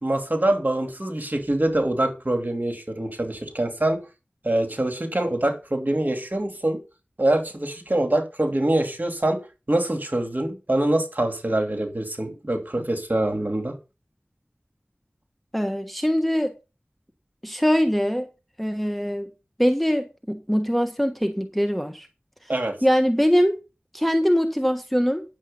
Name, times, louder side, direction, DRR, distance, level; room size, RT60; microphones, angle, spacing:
voice 1, 0.0-4.0 4.4-6.8 7.2-9.4 9.7-13.7 22.5-22.8, right 1 dB, 45° right, 2.9 m, -24 dB
voice 2, 15.5-16.5 17.4-18.3 18.6-19.3 19.6-22.1 22.8-23.6 23.9-25.2, equal, ahead, 1.4 m, -22 dB
10.0 x 7.4 x 5.5 m
wide cardioid pair, 50°, 4 cm